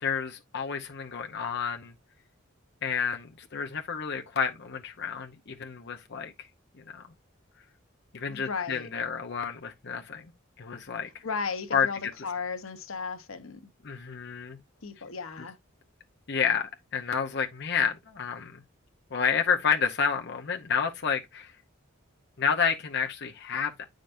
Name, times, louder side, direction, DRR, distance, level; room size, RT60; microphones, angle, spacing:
voice 1, 0.0-1.9 2.8-6.3 6.9-7.0 8.1-10.2 10.6-11.1 11.7-11.9 13.8-14.6 16.3-18.5 19.1-21.5 22.4-23.8, left 6 dB, 55° left, 0.8 m, -30 dB
voice 2, 8.3-8.9 11.2-13.7 14.8-15.6, left 5 dB, 80° left, 1.1 m, -35 dB
9.0 x 5.1 x 2.6 m
head